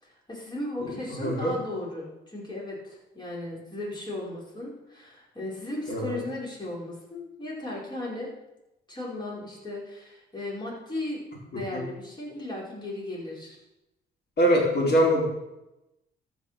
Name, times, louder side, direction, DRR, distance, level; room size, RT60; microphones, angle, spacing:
voice 1, 0.0-8.3 8.9-11.2 11.5-13.6, left 1 dB, 20° left, -5 dB, 4.9 m, -36 dB
voice 2, 0.8-1.5 5.9-6.2 11.7-11.8 14.4-15.3, equal, 55° left, -2 dB, 4.3 m, -23 dB
14.0 x 5.7 x 6.7 m, 0.95 s
cardioid pair, 90°, 20 cm